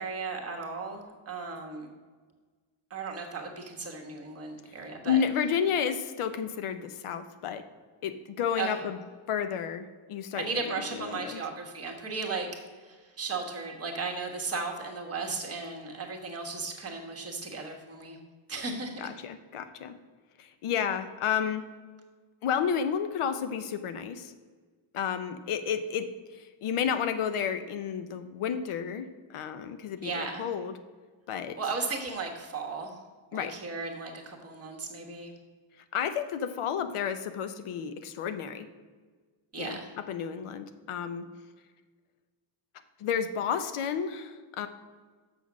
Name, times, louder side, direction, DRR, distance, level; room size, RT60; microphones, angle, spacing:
voice 1, 0.0-1.9 2.9-5.2 8.6-8.8 10.4-12.5 12.8-18.2 18.5-19.0 30.0-30.5 31.6-33.0 33.3-35.3 39.5-39.9, right 4 dB, 30° right, 1 dB, 1.3 m, -35 dB
voice 2, 5.0-7.6 8.0-9.0 9.3-11.4 19.0-19.9 20.4-21.6 22.4-24.3 24.9-30.7 31.3-31.6 33.3-33.5 35.9-38.7 39.6-39.8 40.1-41.3 43.0-44.7, left 7 dB, 85° left, 10 dB, 0.8 m, -31 dB
7.0 x 6.1 x 6.1 m, 1.4 s
wide cardioid pair, 165°, 49 cm